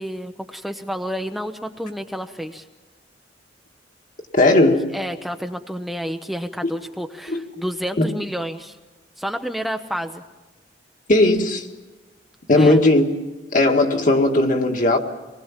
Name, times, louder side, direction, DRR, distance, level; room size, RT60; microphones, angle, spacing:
voice 1, 0.0-2.7 4.9-8.8 9.2-10.2 12.5-12.8, equal, ahead, 0.7 m, -30 dB
voice 2, 4.3-4.9 7.3-7.6 8.0-8.1 11.1-11.7 12.5-13.1 13.5-15.0, left 2 dB, 50° left, 1.8 m, -17 dB
25.0 x 20.0 x 7.4 m
head